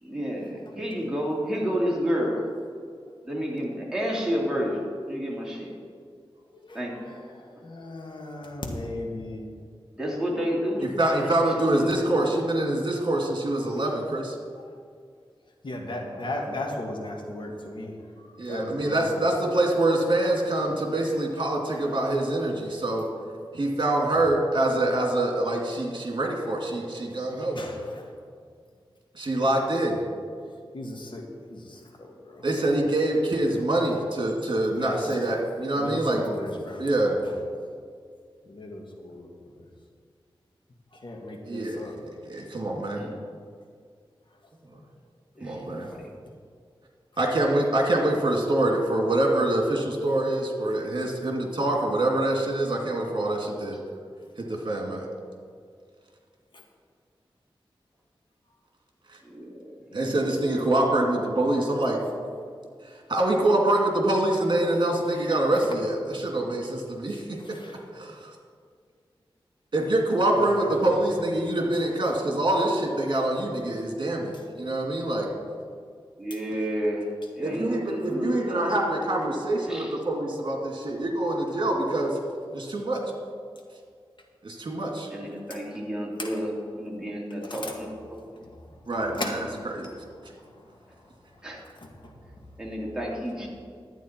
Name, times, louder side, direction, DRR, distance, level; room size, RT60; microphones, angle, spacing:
voice 1, 0.0-2.4 3.2-4.8 5.1-5.7 6.7-7.0 10.0-11.3 11.8-12.1 42.9-43.1 45.4-45.6 59.3-59.8 76.2-77.1 77.3-78.7 79.7-79.9 85.1-88.4 91.4-91.6 92.6-93.5, equal, 5° right, -3 dB, 2.7 m, -30 dB
voice 2, 6.5-9.4 14.6-14.7 15.6-19.2 21.7-22.0 22.4-22.5 27.1-27.2 27.5-28.1 30.7-31.2 31.5-32.4 34.7-35.1 35.8-36.9 38.4-39.7 40.9-41.9 45.5-45.6 59.9-60.3 67.1-67.7 70.3-70.9 86.2-86.3 87.4-87.8 88.3-88.8 89.1-89.9 90.2-90.8 91.7-92.1, left 1 dB, 55° left, 0 dB, 1.8 m, -37 dB
voice 3, 10.8-14.3 18.4-23.1 23.5-27.6 29.1-30.0 32.4-36.2 36.8-37.2 41.4-41.9 42.2-43.1 45.4-45.9 47.2-53.8 54.4-55.1 59.9-62.0 63.1-67.4 67.9-68.3 69.7-75.3 77.4-82.1 82.5-83.0 84.4-85.1 88.9-89.4 89.7-89.9 93.1-93.2, right 1 dB, 55° right, 0 dB, 2.3 m, -25 dB
11.5 x 8.9 x 4.4 m, 2.1 s
wide cardioid pair, 65°, 10 cm